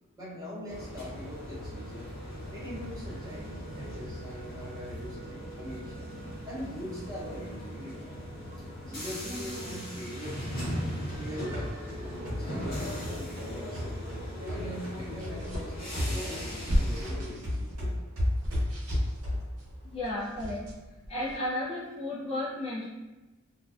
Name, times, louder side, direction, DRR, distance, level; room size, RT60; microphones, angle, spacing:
voice 1, 0.2-2.1 2.5-6.2 6.5-8.1 8.6-10.7 11.0-11.7 12.0-14.0 14.5-16.4 16.6-17.9, equal, 15° right, -8 dB, 0.7 m, -42 dB
sound 1, 0.7-17.3, equal, 40° left, 1.0 m, -38 dB
sound 2, 11.1-15.0 15.2-19.6, left 1 dB, 65° right, 0.9 m, -34 dB
sound 3, 15.0-21.4, equal, 90° right, 0.7 m, -37 dB
voice 2, 19.8-20.6 21.1-22.9, left 1 dB, 25° left, -8 dB, 0.5 m, -33 dB
2.5 x 2.2 x 2.3 m, 1.1 s
head